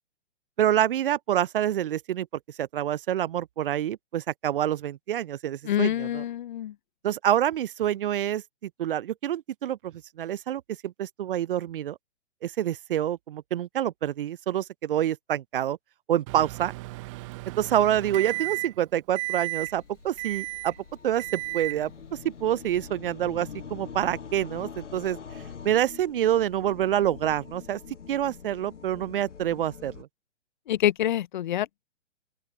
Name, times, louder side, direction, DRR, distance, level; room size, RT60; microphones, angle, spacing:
voice 1, 0.6-2.3 2.6-6.2 7.0-12.0 12.4-15.8 16.1-16.7 17.6-20.7 21.0-21.9 22.2-25.2 25.6-27.8 28.1-30.1, right 11 dB, 50° right, 0.5 m, -27 dB
voice 2, 5.6-6.7 30.7-31.7, left 12 dB, 45° left, 0.5 m, -26 dB
Microwave oven, 16.3-18.8 19.1-19.7 20.2-20.8 21.2-21.8, right 23 dB, 25° right, 0.8 m, -34 dB
sound 1, 19.2-30.0, left 6 dB, 80° left, 1.2 m, -44 dB
open air
figure-of-eight pair, 130°, 36 cm